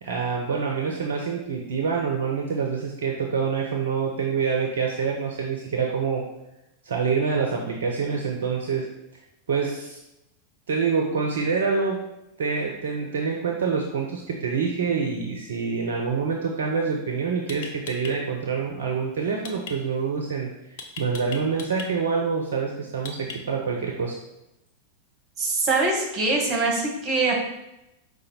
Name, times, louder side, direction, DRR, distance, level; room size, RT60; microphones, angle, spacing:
voice 1, 0.0-6.3 6.8-8.9 9.5-10.0 10.7-12.0 12.4-24.2, right 5 dB, 60° right, 1 dB, 0.5 m, -26 dB
sound 1, 17.5-18.1 19.4-19.7 20.8-21.9 23.0-23.6, left 5 dB, 55° left, 0.6 m, -37 dB
voice 2, 25.4-27.3, right 3 dB, 30° right, 0 dB, 1.2 m, -23 dB
4.9 x 2.2 x 4.3 m, 0.91 s
figure-of-eight pair, 90°, 0 cm